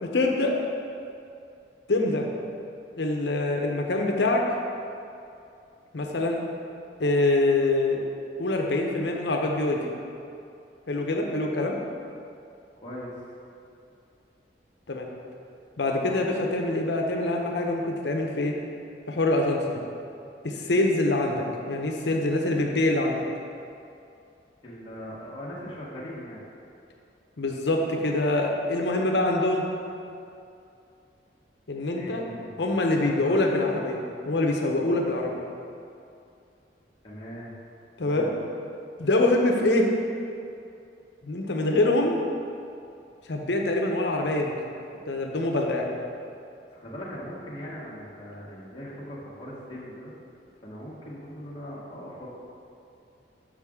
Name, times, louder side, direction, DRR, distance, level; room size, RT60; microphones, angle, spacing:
voice 1, 0.0-0.5 1.9-2.3 3.0-4.4 5.9-6.4 7.0-8.0 8.4-9.9 10.9-11.8 14.9-15.1 15.8-18.6 19.1-19.6 20.4-23.2 27.4-29.6 31.7-32.3 32.6-35.4 38.0-38.3 39.0-39.9 41.2-42.2 43.3-44.5 45.1-45.9, left 2 dB, 70° left, 1 dB, 0.7 m, -25 dB
voice 2, 12.8-13.1 24.6-26.4 31.9-33.4 37.0-37.5 38.0-38.3 46.7-50.1 50.6-52.3, equal, 30° left, -7 dB, 1.1 m, -40 dB
7.2 x 5.1 x 3.6 m, 2.6 s
head